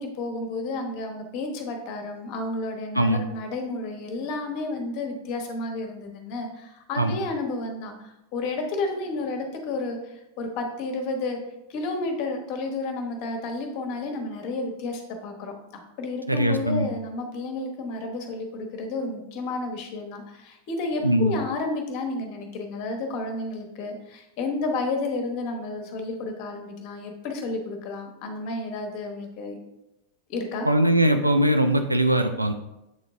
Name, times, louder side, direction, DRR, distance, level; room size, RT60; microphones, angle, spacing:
voice 1, 0.0-11.4 11.7-15.5 16.0-29.6 30.3-30.7, left 3 dB, 45° left, 4 dB, 1.1 m, -31 dB
voice 2, 16.3-16.9 21.0-21.3 30.6-32.5, right 1 dB, 85° right, 7 dB, 0.4 m, -21 dB
7.8 x 3.9 x 3.5 m, 0.91 s
figure-of-eight pair, 90°, 0 cm